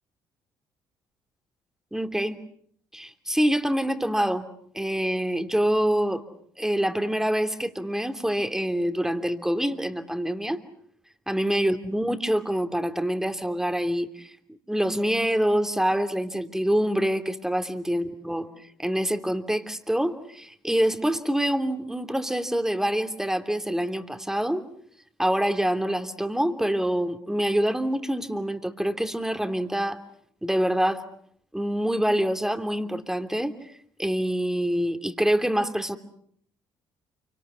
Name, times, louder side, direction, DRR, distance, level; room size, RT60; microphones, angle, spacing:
voice 1, 1.9-2.4 2.9-4.5 4.7-6.2 6.6-10.6 11.3-14.3 14.7-18.5 18.8-24.7 25.2-30.0 30.4-31.0 31.5-33.5 34.0-36.0, equal, 5° right, 8 dB, 2.9 m, -26 dB
29.0 x 25.5 x 7.0 m, 0.63 s
hypercardioid pair, 50°, 10 cm